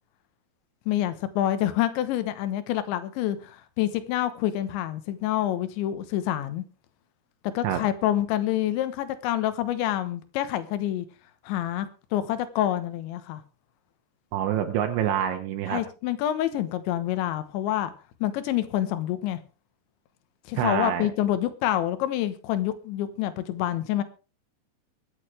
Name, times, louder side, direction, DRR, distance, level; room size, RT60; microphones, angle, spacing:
voice 1, 0.9-6.6 7.4-11.1 11.4-13.4 15.7-17.9 18.2-19.4 20.5-24.0, left 12 dB, 80° left, 3.4 m, -27 dB
voice 2, 14.3-15.8 20.6-21.1, right 10 dB, 80° right, 3.4 m, -26 dB
23.5 x 9.0 x 3.3 m
omnidirectional pair, 5.3 m